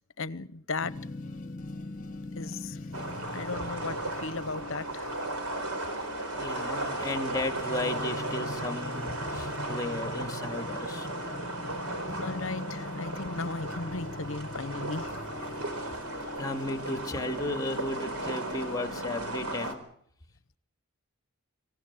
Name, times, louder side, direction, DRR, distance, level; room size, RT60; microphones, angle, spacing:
voice 1, 0.2-0.9 2.4-3.1 3.3-5.1 12.2-15.1, left 3 dB, 60° left, 0.9 m, -36 dB
sound 1, 0.8-19.7, left 2 dB, 35° left, 1.4 m, -42 dB
sound 2, 2.9-19.7, right 2 dB, 85° right, 4.4 m, -36 dB
voice 2, 6.3-11.1 16.4-19.8, left 2 dB, 15° left, 2.1 m, -34 dB
25.5 x 15.5 x 8.2 m
head